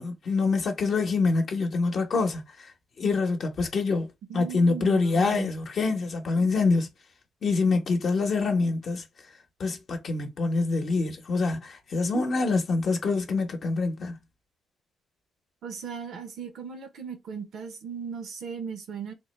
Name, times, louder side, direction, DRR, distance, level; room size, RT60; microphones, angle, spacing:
voice 1, 0.0-2.7 3.0-4.1 4.3-6.9 7.4-9.0 9.6-14.2, left 3 dB, 55° left, 0.8 m, -25 dB
voice 2, 4.3-5.5 15.6-19.1, right 6 dB, 70° right, 0.8 m, -37 dB
3.6 x 2.1 x 3.1 m
cardioid pair, 90°, 0 cm